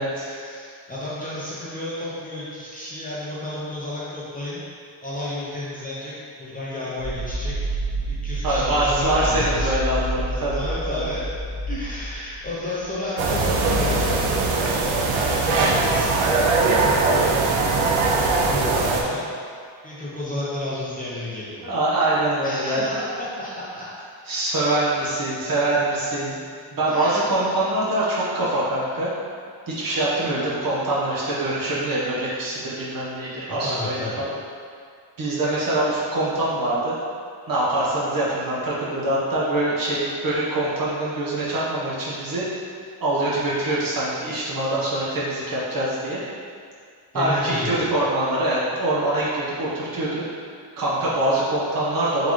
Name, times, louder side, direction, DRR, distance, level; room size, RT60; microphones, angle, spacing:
voice 1, 0.2-4.6 5.0-6.1 6.4-7.6 8.1-9.7 10.3-11.3 11.7-16.2 18.0-19.2 19.8-21.7 22.4-23.1 23.4-23.9 26.9-27.3 33.5-34.2 47.1-47.9, left 1 dB, 20° left, -9 dB, 0.6 m, -32 dB
sound 1, 7.0-13.0, right 1 dB, 90° left, 0.9 m, -29 dB
voice 2, 8.4-10.6 10.9-11.1 17.1-17.4 21.6-22.8 24.3-26.4 26.7-29.1 29.7-34.3 35.2-37.0 37.5-42.5 43.0-46.2 47.1-50.2 50.7-52.3, right 1 dB, 45° right, -8 dB, 1.1 m, -24 dB
sound 2, 13.2-19.0, right 3 dB, 80° right, 0.7 m, -21 dB
3.9 x 3.6 x 3.1 m, 2.2 s
wide cardioid pair, 160°, 47 cm